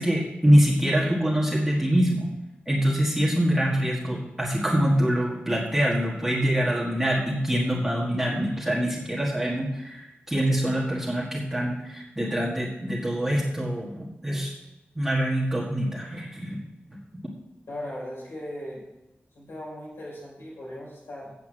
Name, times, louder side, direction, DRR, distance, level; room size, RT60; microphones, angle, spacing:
voice 1, 0.0-2.3 2.7-14.6 14.9-16.6 16.9-17.0, equal, 10° right, -5 dB, 1.6 m, -24 dB
voice 2, 17.7-18.8 19.3-21.4, left 1 dB, 85° left, -6 dB, 4.4 m, -38 dB
8.2 x 7.2 x 7.4 m, 0.96 s
wide cardioid pair, 145°, 4 cm